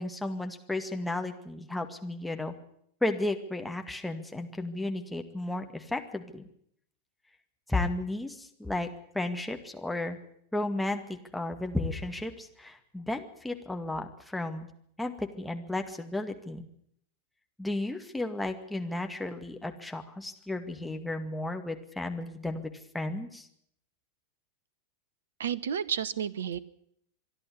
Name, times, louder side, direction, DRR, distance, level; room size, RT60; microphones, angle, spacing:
voice 1, 0.0-2.5 3.0-6.5 7.7-8.9 9.1-10.2 10.5-14.7 15.0-16.7 17.6-23.5, left 2 dB, 5° left, 4 dB, 2.1 m, -33 dB
voice 2, 25.4-26.6, right 8 dB, 65° right, 20 dB, 0.9 m, -31 dB
26.0 x 11.5 x 9.8 m, 0.69 s
figure-of-eight pair, 90°, 0 cm